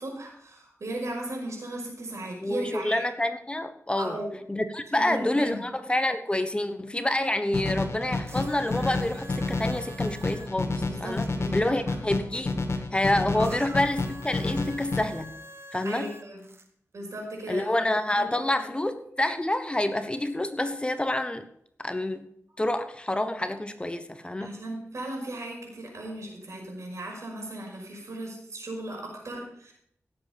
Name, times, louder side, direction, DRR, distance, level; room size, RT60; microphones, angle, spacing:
voice 1, 0.0-3.0 4.0-4.4 5.0-5.6 10.9-12.0 13.3-13.6 15.8-16.4 16.9-17.7 18.2-18.7 24.4-29.7, right 1 dB, 80° right, -1 dB, 5.6 m, -37 dB
voice 2, 2.4-4.2 4.5-11.3 11.5-12.6 12.9-15.3 15.7-16.1 17.5-21.5 21.8-22.3 22.6-24.5, left 1 dB, 20° left, 9 dB, 1.2 m, -28 dB
sound 1, 7.5-15.0, left 3 dB, 60° left, 1.8 m, -30 dB
sound 2, 8.3-11.3 13.4-16.7 17.6-17.7, right 1 dB, 55° right, 1.6 m, -47 dB
17.0 x 7.8 x 5.3 m, 0.68 s
wide cardioid pair, 75°, 5 cm